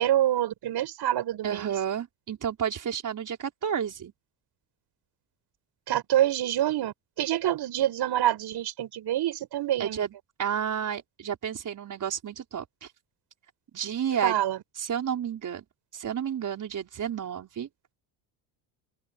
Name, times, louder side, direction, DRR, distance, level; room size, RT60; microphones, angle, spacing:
voice 1, 0.0-1.7 5.9-10.0 14.2-14.6, right 12 dB, 55° right, 6.9 m, -26 dB
voice 2, 1.4-4.1 9.8-10.1 10.4-12.9 13.7-14.4 14.8-15.7 15.9-17.7, right 8 dB, 40° right, 5.4 m, -31 dB
open air
cardioid pair, 115°, 46 cm